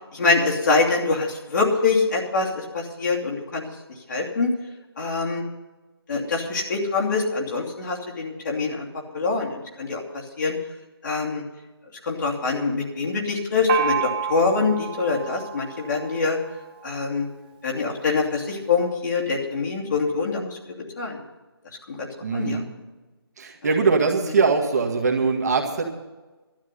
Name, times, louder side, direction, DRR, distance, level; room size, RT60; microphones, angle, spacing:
voice 1, 0.1-3.6 4.1-4.5 5.0-5.4 6.1-8.9 9.1-10.0 10.4-10.5 11.0-11.4 12.0-16.4 16.8-17.3 17.6-20.5 21.0-21.2 22.0-22.1 22.3-22.6, left 4 dB, 50° left, -2 dB, 2.8 m, -24 dB
Gong, 13.7-17.2, right 8 dB, 20° right, 1.1 m, -30 dB
voice 2, 22.2-22.7 23.4-25.8, right 4 dB, 40° right, 1 dB, 1.8 m, -22 dB
12.5 x 9.6 x 6.7 m, 1.2 s
figure-of-eight pair, 155°, 13 cm